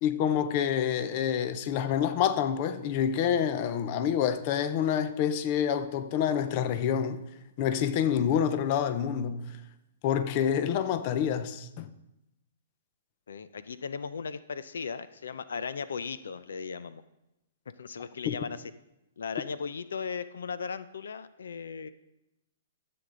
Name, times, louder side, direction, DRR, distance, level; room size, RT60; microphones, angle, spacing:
voice 1, 0.0-7.2 7.6-9.6 10.0-11.9 18.3-18.4, left 8 dB, 35° left, 0.6 m, -27 dB
voice 2, 13.3-17.0 17.8-18.6 19.2-21.9, left 5 dB, 85° left, 0.5 m, -37 dB
13.5 x 7.8 x 3.8 m
hypercardioid pair, 160°, 0 cm